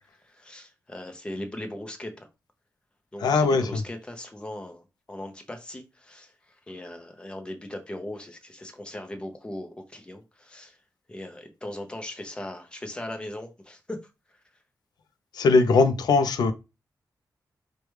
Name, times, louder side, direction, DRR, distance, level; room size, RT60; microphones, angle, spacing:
voice 1, 0.2-2.3 3.1-10.8 11.1-14.0, left 1 dB, 15° left, 0.6 m, -39 dB
voice 2, 3.2-3.8 15.3-16.5, left 4 dB, 85° left, 0.4 m, -20 dB
4.7 x 2.2 x 3.1 m
wide cardioid pair, 140°, 7 cm